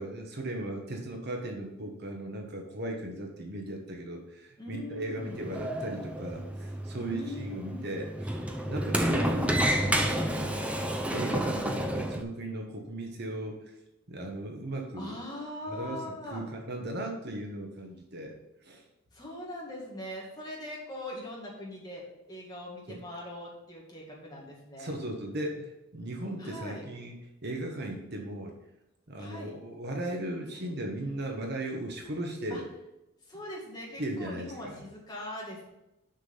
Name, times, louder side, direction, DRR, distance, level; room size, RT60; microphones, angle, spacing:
voice 1, 0.0-8.4 8.7-9.5 9.7-10.7 11.1-13.6 14.1-15.2 15.7-18.4 18.6-18.8 22.9-23.0 24.8-27.1 27.4-28.5 29.1-32.7 34.0-34.8, right 1 dB, 50° right, 2 dB, 1.2 m, -37 dB
voice 2, 4.6-5.4 6.9-7.9 8.9-9.4 14.9-16.4 19.1-24.9 26.4-26.9 29.2-29.5 32.5-32.6 33.3-35.6, left 1 dB, 20° left, -4 dB, 2.1 m, -41 dB
Sliding door, 5.2-12.2, right 1 dB, 5° right, 0.5 m, -30 dB
6.5 x 6.0 x 5.6 m, 0.91 s
head